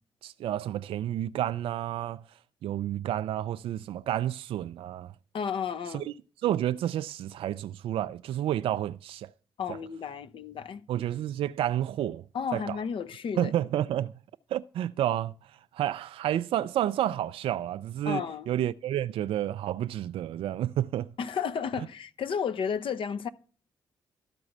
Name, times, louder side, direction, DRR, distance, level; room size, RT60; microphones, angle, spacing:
voice 1, 0.2-2.2 2.6-5.1 5.9-6.1 6.4-9.3 9.7-9.8 10.9-12.2 12.5-12.8 13.4-14.1 14.5-21.1, right 12 dB, 65° right, 0.4 m, -30 dB
voice 2, 5.3-6.1 9.6-10.8 12.3-13.5 18.1-18.5 21.2-23.3, left 7 dB, 60° left, 0.8 m, -32 dB
12.5 x 4.8 x 6.4 m
hypercardioid pair, 40°, 10 cm